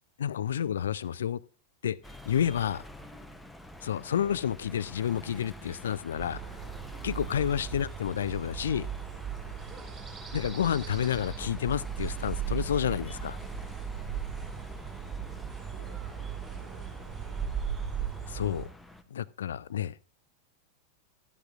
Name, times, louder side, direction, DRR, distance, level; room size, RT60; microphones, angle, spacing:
voice 1, 0.2-1.4 1.8-2.0 2.3-2.8 3.8-6.4 7.0-8.9 10.3-13.4 18.3-18.7 19.1-19.9, left 9 dB, 65° left, 19 dB, 0.3 m, -30 dB
sound 1, 2.0-19.0, left 1 dB, 5° left, 0.7 m, -49 dB
voice 2, 2.6-3.4 7.4-7.6 9.7-9.9 14.3-15.0 15.7-17.4, right 3 dB, 40° right, 0 dB, 3.8 m, -57 dB
sound 2, 6.2-18.7, right 7 dB, 25° right, 4.5 m, -37 dB
13.0 x 10.5 x 2.5 m, 0.36 s
figure-of-eight pair, 90°, 0 cm